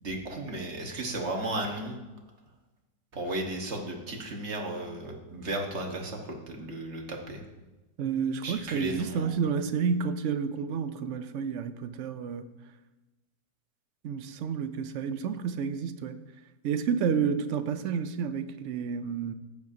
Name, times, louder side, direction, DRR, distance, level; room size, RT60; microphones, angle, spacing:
voice 1, 0.0-2.0 3.1-7.4 8.4-9.3, right 1 dB, 45° right, 1.5 m, -34 dB
voice 2, 8.0-12.5 14.0-16.1 16.6-19.3, right 6 dB, 70° right, 0.7 m, -30 dB
15.0 x 8.4 x 2.7 m
omnidirectional pair, 1.9 m